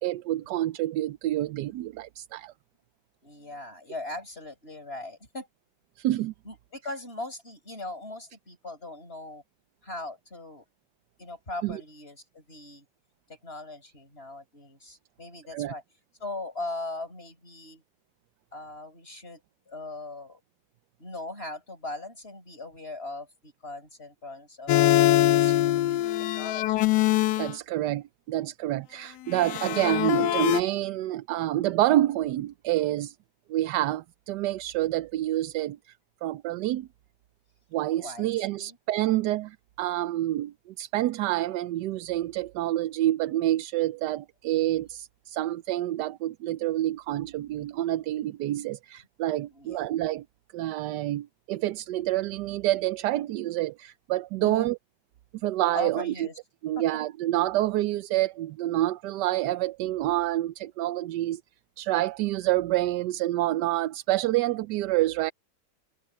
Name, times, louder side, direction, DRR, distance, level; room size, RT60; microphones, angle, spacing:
voice 1, 0.0-2.5 6.0-6.3 11.6-11.8 15.5-15.7 27.4-33.2 33.5-35.9 36.2-36.9 37.7-50.2 50.5-54.8 55.3-56.3 56.6-61.4 61.8-65.3, right 15 dB, 85° right, 1.2 m, -28 dB
voice 2, 3.2-5.5 6.4-9.4 9.8-10.6 11.2-12.8 13.3-15.8 16.2-17.8 18.5-19.4 19.7-20.4 21.0-24.7 25.2-26.9 38.0-38.3 38.6-38.8 49.5-49.8 54.4-54.7 55.7-56.4 56.8-56.9, left 2 dB, 35° left, 8.4 m, -39 dB
sound 1, 24.7-27.5 29.3-30.6, left 14 dB, 80° left, 1.1 m, -23 dB
omnidirectional pair, 1.8 m